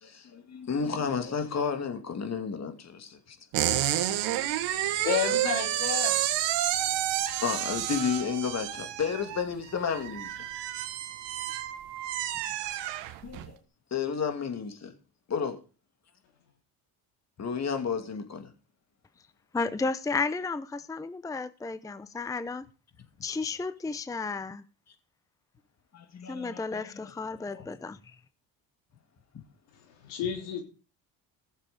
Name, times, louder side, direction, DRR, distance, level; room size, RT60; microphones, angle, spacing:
voice 1, 0.0-3.4 7.4-10.3 13.2-13.6 13.9-14.9 15.3-15.6 17.4-18.5 25.9-27.1 27.5-27.7, left 6 dB, 40° left, 2.6 m, -32 dB
sound 1, 3.5-13.5, right 13 dB, 85° right, 1.5 m, -30 dB
voice 2, 4.4-6.2 30.0-30.6, left 7 dB, 85° left, 3.5 m, -31 dB
voice 3, 19.5-22.6 23.2-24.6 26.3-28.2, left 4 dB, 10° left, 0.6 m, -33 dB
15.0 x 7.4 x 5.2 m
supercardioid pair, 90°, 42 cm